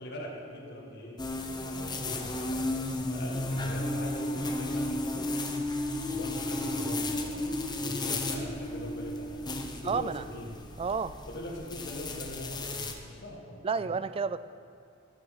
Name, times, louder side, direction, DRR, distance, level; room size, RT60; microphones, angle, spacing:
voice 1, 0.0-5.3 6.1-7.5 7.8-10.7 11.3-14.0, left 1 dB, 55° left, -2 dB, 1.7 m, -42 dB
sound 1, 1.2-12.9, left 2 dB, 20° left, 0.8 m, -36 dB
sound 2, 3.7-10.6, left 1 dB, 70° right, 2.8 m, -35 dB
voice 2, 9.8-10.2 10.8-11.1 13.6-14.4, right 5 dB, 30° right, 14 dB, 0.3 m, -30 dB
14.5 x 7.4 x 5.7 m, 2.5 s
head